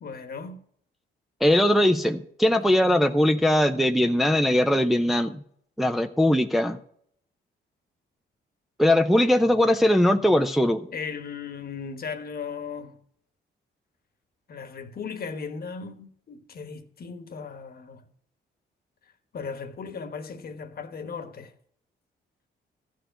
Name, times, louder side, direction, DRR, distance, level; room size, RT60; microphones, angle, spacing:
voice 1, 0.0-0.6 10.9-13.0 14.5-18.1 19.3-21.5, left 5 dB, 50° left, 1.2 m, -37 dB
voice 2, 1.4-5.4 5.8-6.8 8.8-10.9, left 1 dB, ahead, 0.6 m, -20 dB
14.0 x 4.6 x 8.9 m
cardioid pair, 90°, 20 cm